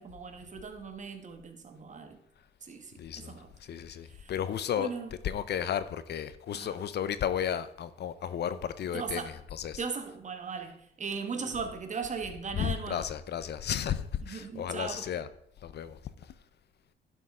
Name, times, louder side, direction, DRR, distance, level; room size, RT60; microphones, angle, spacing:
voice 1, 0.0-2.2 2.6-3.5 4.0-4.3 4.8-5.1 6.5-6.8 8.9-9.4 9.8-13.1 14.2-15.1, right 5 dB, 40° right, 7 dB, 1.3 m, -38 dB
voice 2, 3.0-3.3 3.6-4.9 5.2-9.2 9.5-9.8 12.6-15.3 15.6-16.0, left 9 dB, 55° left, 14 dB, 0.6 m, -33 dB
11.0 x 6.3 x 3.6 m, 0.74 s
cardioid pair, 90°, 20 cm